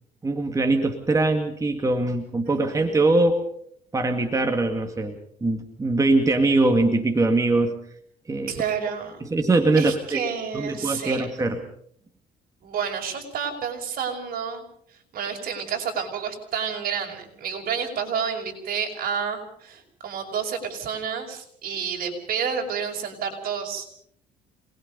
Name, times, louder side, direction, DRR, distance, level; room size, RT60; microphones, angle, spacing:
voice 1, 0.2-3.4 3.9-7.8 8.3-8.5 9.2-10.2 10.5-11.6, right 2 dB, 20° right, 4 dB, 2.2 m, -22 dB
voice 2, 2.5-3.1 8.5-9.2 9.8-11.4 12.6-14.6 15.1-23.9, right 7 dB, 60° right, 3 dB, 5.8 m, -30 dB
27.5 x 20.5 x 5.4 m, 0.65 s
cardioid pair, 110°, 17 cm